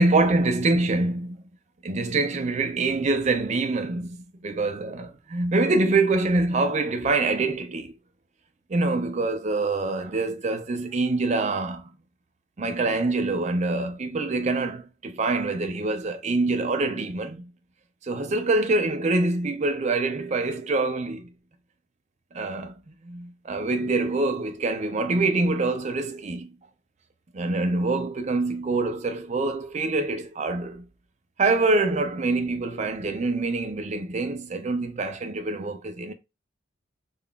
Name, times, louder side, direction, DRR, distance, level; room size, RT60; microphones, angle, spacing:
voice 1, 0.0-1.4 1.8-7.9 8.7-11.9 12.6-17.5 18.0-21.3 22.3-26.5 27.3-30.8 31.4-36.1, right 3 dB, 35° right, 0.4 m, -25 dB
2.4 x 2.3 x 3.6 m
head